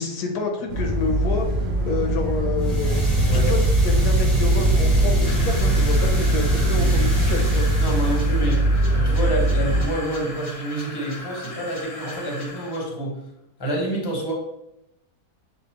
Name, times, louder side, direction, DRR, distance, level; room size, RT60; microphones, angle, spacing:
voice 1, 0.0-1.5 1.9-3.0 3.3-3.6 3.8-7.7, left 4 dB, 80° left, 2 dB, 1.4 m, -28 dB
sound 1, 0.7-9.8, right 1 dB, 50° right, 0.9 m, -21 dB
sound 2, 2.6-8.5, right 2 dB, ahead, 1.0 m, -24 dB
sound 3, 5.2-12.9, left 2 dB, 60° left, 0.3 m, -37 dB
voice 2, 7.8-8.6 8.9-13.2 13.6-14.3, right 1 dB, 20° left, -1 dB, 0.9 m, -27 dB
7.1 x 2.5 x 2.9 m, 0.84 s
omnidirectional pair, 1.6 m